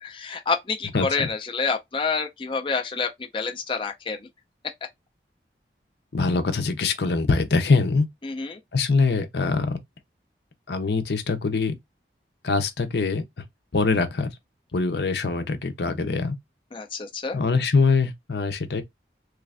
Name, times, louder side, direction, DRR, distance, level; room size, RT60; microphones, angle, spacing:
voice 1, 0.0-4.2 8.2-8.6 16.7-17.4, left 4 dB, 30° left, 0.4 m, -28 dB
voice 2, 0.9-1.3 6.1-8.1 8.7-9.8 10.7-11.7 12.4-13.2 13.7-14.3 14.7-16.4 17.3-18.8, left 4 dB, 75° left, 0.7 m, -23 dB
3.2 x 2.5 x 3.3 m
head